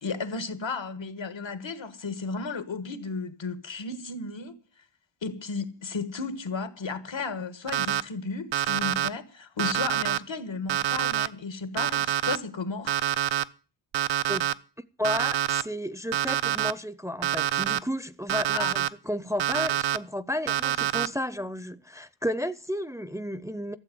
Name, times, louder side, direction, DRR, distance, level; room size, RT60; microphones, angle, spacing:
voice 1, 0.0-4.6 5.2-13.0 18.5-18.7, left 4 dB, 85° left, 1.5 m, -34 dB
Alarm, 7.7-8.0 8.5-9.1 9.6-10.2 10.7-11.3 11.8-12.4 12.9-13.4 13.9-14.5 15.0-15.6 16.1-16.7 17.2-17.8 18.3-18.9 19.4-20.0 20.5-21.1, right 11 dB, 85° right, 0.6 m, -26 dB
voice 2, 15.0-23.8, left 1 dB, 5° right, 0.5 m, -32 dB
12.5 x 7.6 x 7.7 m
wide cardioid pair, 90°, 44 cm